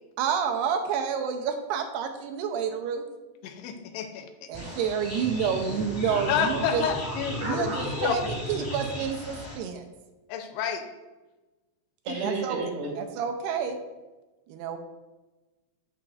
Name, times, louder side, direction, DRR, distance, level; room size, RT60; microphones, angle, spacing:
voice 1, 0.2-3.0 4.5-6.9 7.4-8.2 8.5-9.8 12.1-12.6 13.0-13.8 14.5-14.8, right 7 dB, 85° right, 5 dB, 2.8 m, -29 dB
voice 2, 3.4-4.5 6.3-8.2 10.3-10.8, left 8 dB, 90° left, 6 dB, 2.8 m, -30 dB
sound 1, 4.5-9.5, equal, 15° left, 1.6 m, -35 dB
voice 3, 7.4-7.8 12.1-12.9, right 3 dB, 70° right, -3 dB, 4.2 m, -32 dB
13.5 x 5.8 x 2.5 m, 1.1 s
omnidirectional pair, 4.7 m